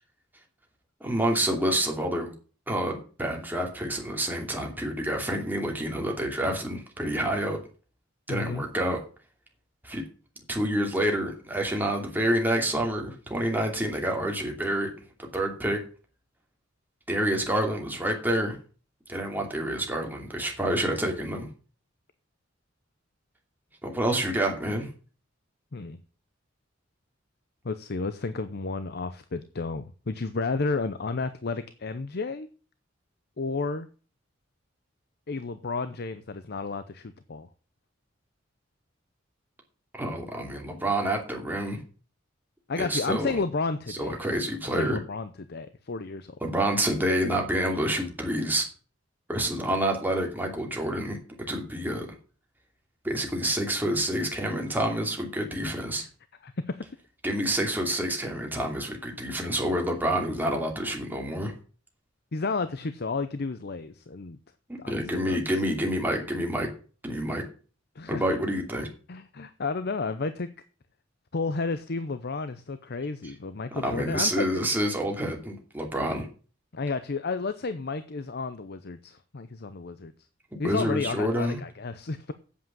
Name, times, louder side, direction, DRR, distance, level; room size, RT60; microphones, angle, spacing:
voice 1, 1.0-2.3 2.7-7.6 8.3-9.0 9.8-10.0 10.5-14.9 15.2-15.8 17.1-18.6 19.1-21.5 23.8-24.9 39.9-41.8 42.8-43.3 43.9-45.0 46.4-48.7 49.3-51.2 51.5-52.1 53.0-56.0 57.2-61.5 64.9-66.7 67.0-67.4 68.1-68.9 73.8-76.3 80.6-81.6, right 1 dB, 10° right, 1 dB, 2.7 m, -28 dB
voice 2, 8.3-8.6 25.7-26.0 27.6-32.5 33.4-33.9 35.3-37.5 42.7-44.2 44.8-46.4 55.9-56.1 56.4-56.8 62.3-64.4 64.8-64.9 65.2-65.4 67.9-68.2 69.1-70.5 71.3-74.7 76.7-80.1 80.6-82.3, left 3 dB, 55° left, 11 dB, 0.7 m, -32 dB
8.6 x 7.6 x 7.4 m, 0.39 s
head